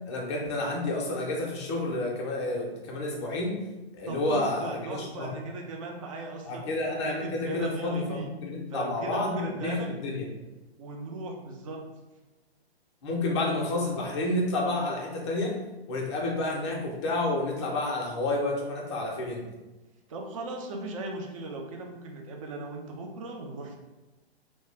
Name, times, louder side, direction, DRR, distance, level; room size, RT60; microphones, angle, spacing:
voice 1, 0.1-3.6 3.9-5.3 6.5-10.3 13.0-15.5 15.9-19.4, left 2 dB, 25° left, -1 dB, 0.5 m, -30 dB
voice 2, 4.1-6.7 7.0-8.3 8.7-9.9 10.8-11.8 20.1-23.8, right 2 dB, 35° right, 1 dB, 0.4 m, -37 dB
2.3 x 2.1 x 3.2 m, 1.1 s
figure-of-eight pair, 125°, 32 cm